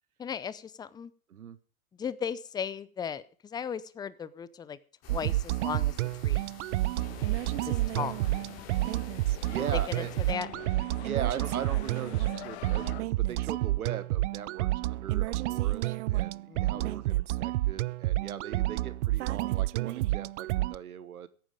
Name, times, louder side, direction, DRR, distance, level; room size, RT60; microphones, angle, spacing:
voice 1, 0.2-1.1 2.0-4.8 5.1-6.0 6.2-6.5 7.6-8.2 9.7-10.5 16.5-17.0, left 7 dB, 10° left, 17 dB, 0.5 m, -36 dB
sound 1, 5.0-10.3, left 8 dB, 35° left, 3.1 m, -51 dB
sound 2, 5.1-20.8, right 17 dB, 55° right, 0.5 m, -30 dB
sound 3, 7.0-13.0, left 18 dB, 50° left, 0.6 m, -46 dB
voice 2, 9.4-10.1 11.0-21.3, right 9 dB, 85° right, 14 dB, 1.4 m, -39 dB
16.5 x 9.1 x 5.1 m, 0.43 s
hypercardioid pair, 115°, 43 cm